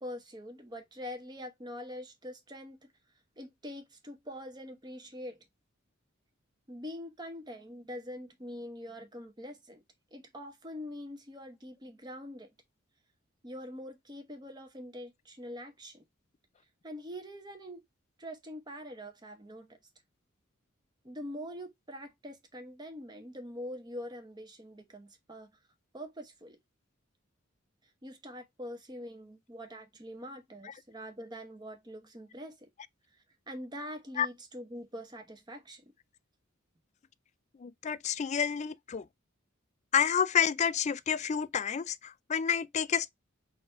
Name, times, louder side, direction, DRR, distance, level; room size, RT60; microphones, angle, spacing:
voice 1, 0.0-2.9 3.4-5.4 6.7-9.8 10.1-12.5 13.4-16.1 16.8-17.8 18.2-19.8 21.0-25.5 25.9-26.6 28.0-32.7 33.1-35.9, equal, 20° right, 1.0 m, -44 dB
voice 2, 37.6-39.0 39.9-43.1, left 7 dB, 35° left, 0.3 m, -29 dB
4.0 x 2.7 x 4.4 m
head